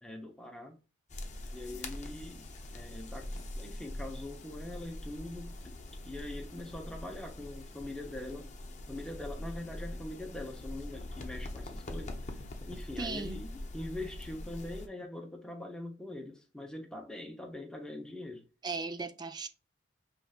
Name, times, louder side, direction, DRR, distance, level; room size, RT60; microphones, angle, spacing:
voice 1, 0.0-0.8 1.5-2.5 2.7-5.7 6.0-8.5 8.9-12.1 12.6-18.5, left 1 dB, 5° left, 0.8 m, -43 dB
sound 1, 1.1-14.9, left 1 dB, 40° left, 0.7 m, -43 dB
voice 2, 13.0-13.4 18.6-19.5, right 3 dB, 20° right, 0.4 m, -37 dB
5.1 x 3.2 x 2.4 m
head